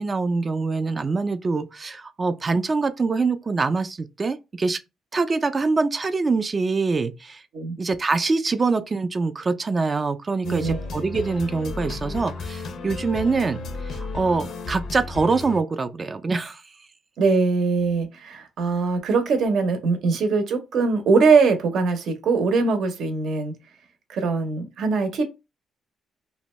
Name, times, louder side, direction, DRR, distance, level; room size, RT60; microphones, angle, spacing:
voice 1, 0.0-4.8 5.1-7.4 7.8-16.6, right 4 dB, 30° right, 0.3 m, -24 dB
sound 1, 10.4-15.6, left 3 dB, 65° left, 0.5 m, -33 dB
voice 2, 10.4-10.9 17.2-23.5 24.1-25.3, right 4 dB, 70° right, 0.7 m, -22 dB
2.6 x 2.1 x 3.0 m
cardioid pair, 90°, 0 cm